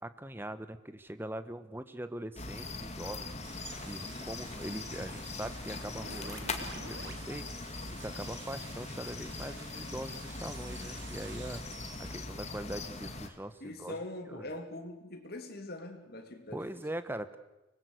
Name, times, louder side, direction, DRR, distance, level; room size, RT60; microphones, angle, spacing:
voice 1, 0.0-3.3 3.8-11.6 12.1-14.0 14.3-14.5 16.5-17.4, right 1 dB, 10° right, 1.1 m, -42 dB
sound 1, 2.4-13.3, left 3 dB, 35° left, 2.1 m, -41 dB
sound 2, 3.4-12.1, right 5 dB, 65° right, 3.2 m, -50 dB
voice 2, 13.6-16.6, left 1 dB, 50° left, 2.9 m, -42 dB
24.5 x 20.0 x 8.1 m
head